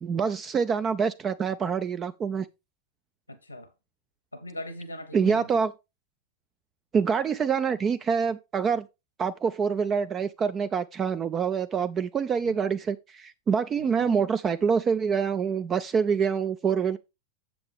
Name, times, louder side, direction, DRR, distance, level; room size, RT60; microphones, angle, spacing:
voice 1, 0.0-2.5 5.1-5.7 6.9-8.9 9.2-17.0, right 6 dB, 25° right, 0.4 m, -26 dB
voice 2, 3.3-3.7 4.3-5.5 12.4-12.6 13.8-14.2, equal, 90° left, 0.9 m, -40 dB
7.7 x 7.2 x 3.3 m
figure-of-eight pair, 90°, 0 cm